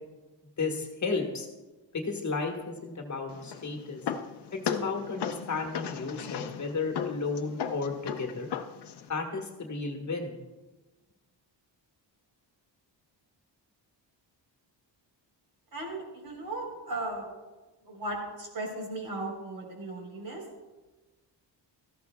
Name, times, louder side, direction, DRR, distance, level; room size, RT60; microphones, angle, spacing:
voice 1, 0.6-1.5 1.9-4.0 4.5-8.5 9.1-10.3, left 4 dB, 40° left, 2 dB, 1.6 m, -33 dB
sound 1, 3.3-9.1, left 8 dB, 65° left, 0.9 m, -36 dB
voice 2, 15.7-17.3 17.8-20.4, right 2 dB, 55° right, 0 dB, 4.1 m, -36 dB
17.5 x 14.0 x 2.3 m, 1.2 s
wide cardioid pair, 155°, 44 cm